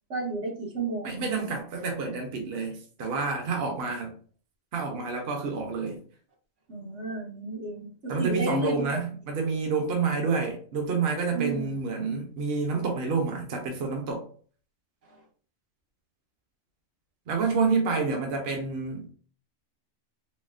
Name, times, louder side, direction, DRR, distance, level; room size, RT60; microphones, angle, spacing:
voice 1, 0.1-1.3 6.7-8.9 11.3-11.7 17.9-18.2, right 1 dB, 80° right, 1.3 m, -32 dB
voice 2, 1.0-4.2 4.7-6.0 8.1-14.3 17.3-19.1, right 4 dB, 60° right, 0.9 m, -28 dB
4.2 x 2.0 x 2.4 m
omnidirectional pair, 1.2 m